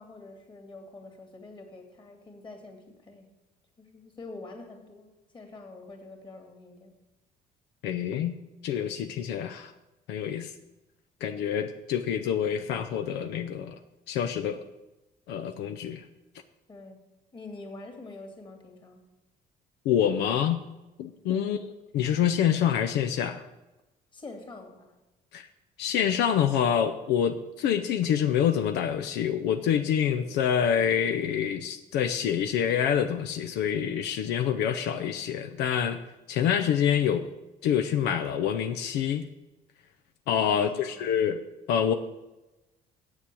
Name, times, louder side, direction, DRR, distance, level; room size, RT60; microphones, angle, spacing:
voice 1, 0.0-3.3 3.8-6.9 16.7-17.0 17.3-19.0 21.3-21.7 24.1-24.9 40.4-41.2, left 2 dB, 30° left, 3 dB, 2.4 m, -46 dB
voice 2, 7.8-8.4 8.6-9.7 10.1-10.5 11.2-13.8 14.1-14.6 15.3-16.0 19.8-20.6 21.0-21.6 21.9-23.4 25.3-25.5 25.8-36.0 36.3-37.3 37.6-39.2 40.3-41.4 41.7-41.9, left 8 dB, 85° left, 8 dB, 0.6 m, -26 dB
7.8 x 7.3 x 8.4 m, 1.0 s
cardioid pair, 110°, 17 cm